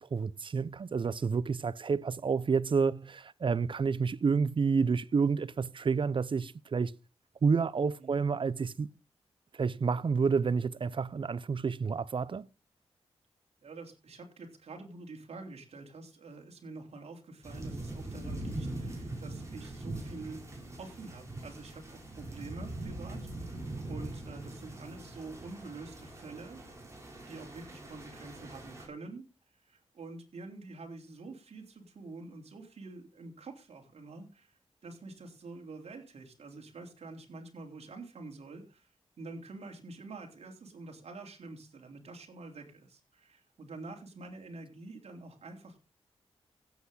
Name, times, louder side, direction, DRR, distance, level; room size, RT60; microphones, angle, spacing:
voice 1, 0.0-6.9 7.4-8.9 9.5-12.5, right 5 dB, 50° right, 0.7 m, -29 dB
voice 2, 13.6-20.5 20.8-23.6 23.9-26.6 27.3-29.2 29.6-38.9 39.2-45.8, right 3 dB, 70° right, 3.5 m, -47 dB
sound 1, 17.4-28.9, right 2 dB, 25° right, 5.8 m, -42 dB
16.0 x 8.4 x 3.9 m
cardioid pair, 65°, 11 cm